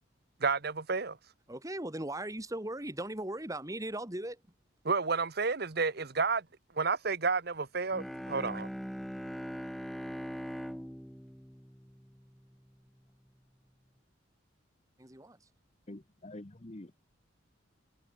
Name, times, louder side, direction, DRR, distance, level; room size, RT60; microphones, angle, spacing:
voice 1, 0.4-1.2 4.8-6.4 6.7-8.7, right 4 dB, 55° right, 1.1 m, -31 dB
voice 2, 1.5-4.4 15.0-15.4, right 1 dB, 15° right, 2.4 m, -38 dB
Bowed string instrument, 7.8-12.7, equal, ahead, 1.0 m, -41 dB
voice 3, 15.9-17.1, left 1 dB, 35° left, 1.1 m, -47 dB
head